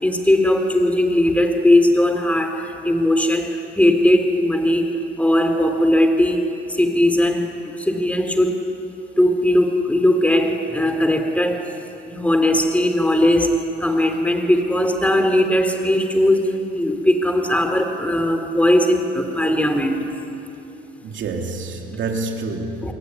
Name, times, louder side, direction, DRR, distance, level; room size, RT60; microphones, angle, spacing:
voice 1, 0.0-4.9 5.2-7.5 7.8-8.6 9.2-11.7 12.1-20.0 22.8-22.9, left 1 dB, 5° left, 3.8 m, -18 dB
voice 2, 21.0-22.9, right 3 dB, 70° right, 3.4 m, -27 dB
27.0 x 22.0 x 9.8 m
cardioid pair, 90°, 20 cm